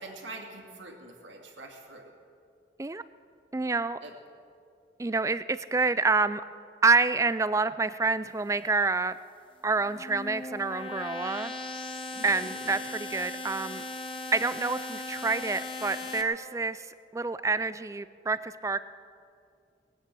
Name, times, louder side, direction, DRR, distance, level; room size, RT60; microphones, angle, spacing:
voice 1, 0.0-2.1 4.0-4.1 12.1-12.8, right 2 dB, 85° right, 1 dB, 2.4 m, -45 dB
voice 2, 3.5-4.0 5.0-6.4 6.8-9.2 9.6-11.5 12.2-13.8 14.3-16.9 17.1-18.8, right 4 dB, 15° right, 15 dB, 0.3 m, -27 dB
sound 1, 9.7-16.2, left 2 dB, 30° left, 0.9 m, -38 dB
19.5 x 9.0 x 7.7 m, 2.4 s
head